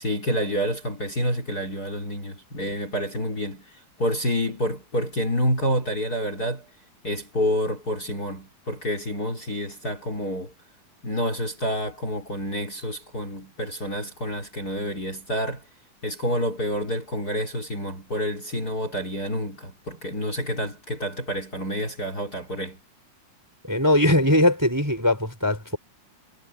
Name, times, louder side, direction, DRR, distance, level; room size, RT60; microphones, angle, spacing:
voice 1, 0.0-3.6 4.0-6.7 7.0-10.5 11.0-15.6 16.0-22.8, equal, 25° left, 3.9 m, -28 dB
voice 2, 23.7-25.8, left 1 dB, 5° right, 4.1 m, -20 dB
omnidirectional pair, 3.8 m